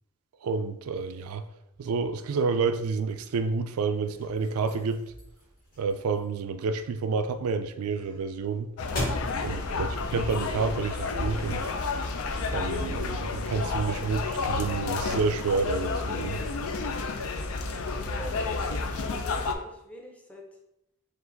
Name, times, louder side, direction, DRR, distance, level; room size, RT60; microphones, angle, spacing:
voice 1, 0.4-1.4 1.8-5.0 5.8-8.7 9.4-11.7 12.5-16.4, right 4 dB, 80° right, 0.4 m, -29 dB
sound 1, 3.9-11.0, left 1 dB, 40° left, 1.6 m, -40 dB
sound 2, 8.8-19.5, left 3 dB, 75° left, 0.4 m, -31 dB
voice 2, 17.9-20.4, right 1 dB, 5° left, 0.6 m, -45 dB
4.6 x 2.5 x 3.8 m
head